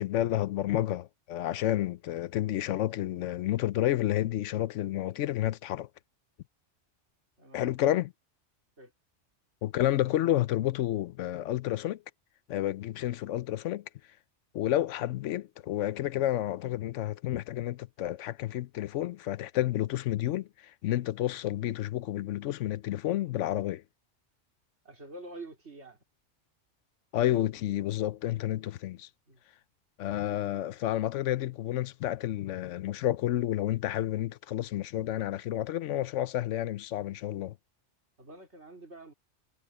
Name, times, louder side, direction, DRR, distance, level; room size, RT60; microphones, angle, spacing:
voice 1, 0.0-5.9 7.5-8.1 9.6-12.0 12.5-13.8 14.5-23.8 27.1-29.1 30.0-37.6, left 13 dB, 85° left, 0.9 m, -30 dB
voice 2, 7.4-7.7 8.8-8.9 24.8-26.0 29.3-29.4 38.2-39.1, right 2 dB, 70° right, 4.4 m, -47 dB
omnidirectional pair, 1.2 m